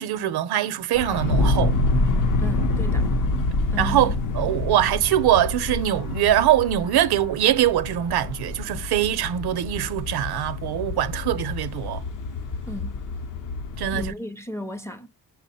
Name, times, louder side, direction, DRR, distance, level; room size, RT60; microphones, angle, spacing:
voice 1, 0.0-1.8 3.0-3.1 3.8-12.0 13.8-14.1, right 12 dB, 75° right, 0.6 m, -23 dB
sound 1, 0.9-14.1, left 4 dB, 55° left, 0.6 m, -34 dB
Fire, 1.1-6.3, left 2 dB, 90° left, 0.8 m, -24 dB
voice 2, 2.4-3.1 3.7-4.1 12.7-13.0 13.9-15.1, left 1 dB, 10° left, 0.4 m, -34 dB
5.8 x 2.0 x 4.1 m
cardioid pair, 120°, 38 cm